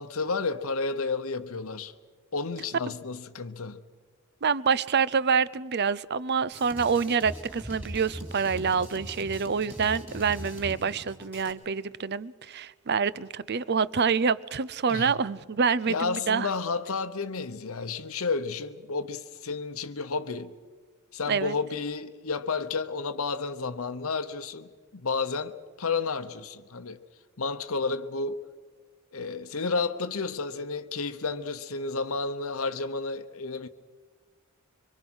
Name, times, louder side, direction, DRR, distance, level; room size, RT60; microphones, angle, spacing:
voice 1, 0.0-1.9 2.3-3.8 14.9-15.1 15.9-20.5 21.1-27.0 27.4-28.4 29.1-33.7, left 4 dB, 70° left, 0.9 m, -31 dB
voice 2, 4.4-16.5 21.3-21.5, right 6 dB, 50° right, 0.6 m, -27 dB
Drum kit, 6.5-11.5, equal, 10° right, 3.4 m, -41 dB
25.5 x 24.0 x 6.3 m
head